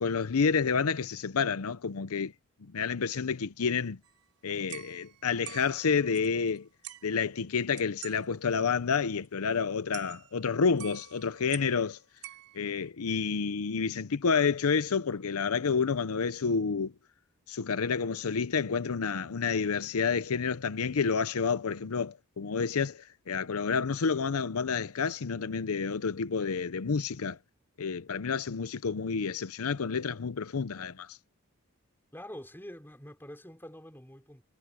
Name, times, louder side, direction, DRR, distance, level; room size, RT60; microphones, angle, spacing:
voice 1, 0.0-2.3 2.6-4.0 4.4-6.7 7.0-12.0 12.5-16.9 17.5-27.4 27.8-31.2, left 5 dB, 75° left, 0.6 m, -29 dB
sound 1, 4.0-4.2 4.7-6.6 6.8-7.2 7.8-8.3 8.5-8.6 8.9-9.0 9.2-9.3 9.9-10.5 10.8-11.9 12.2-12.9, right 14 dB, 90° right, 4.7 m, -47 dB
voice 2, 32.1-34.4, left 1 dB, 10° left, 4.5 m, -46 dB
head